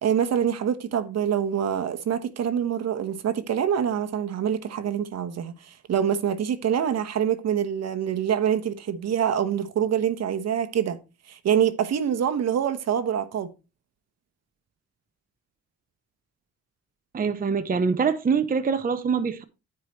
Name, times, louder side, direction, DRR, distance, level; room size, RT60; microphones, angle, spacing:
voice 1, 0.0-11.0 11.3-13.5, right 9 dB, 60° right, 1.1 m, -25 dB
voice 2, 17.1-19.4, right 5 dB, 30° right, 0.8 m, -24 dB
14.0 x 4.9 x 3.1 m
cardioid pair, 90°, 30 cm